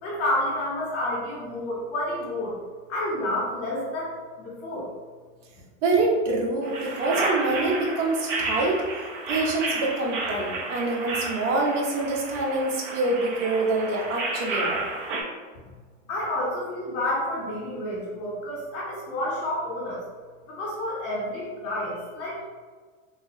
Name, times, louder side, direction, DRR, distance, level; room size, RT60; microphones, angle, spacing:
voice 1, 0.0-2.5 2.9-4.1 4.4-4.9 16.1-20.0 20.5-22.4, left 1 dB, 45° left, -8 dB, 1.4 m, -29 dB
voice 2, 5.8-8.8 9.3-14.8, right 2 dB, 70° right, -2 dB, 1.1 m, -25 dB
sound 1, 6.6-15.2, right 3 dB, 45° right, 0.8 m, -31 dB
3.2 x 2.8 x 3.1 m, 1.5 s
supercardioid pair, 145°, 38 cm